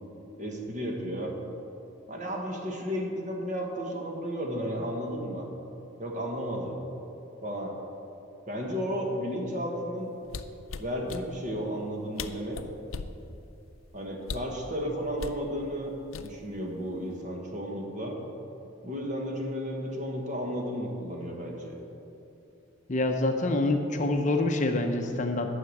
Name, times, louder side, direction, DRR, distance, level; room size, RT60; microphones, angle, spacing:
voice 1, 0.4-1.3 2.1-5.5 6.0-6.8 7.4-7.7 8.5-10.1 10.8-12.6 13.9-15.9 16.2-18.2 18.8-21.8, equal, 35° right, 0 dB, 1.4 m, -33 dB
sound 1, 10.2-11.2 11.9-12.0 12.2-13.2 14.2-14.6 15.2-15.4 16.1-16.6 16.9-17.2, left 5 dB, 85° left, 0.5 m, -38 dB
voice 2, 22.9-25.5, left 2 dB, 35° left, 4 dB, 0.6 m, -26 dB
10.5 x 5.8 x 7.8 m, 2.8 s
head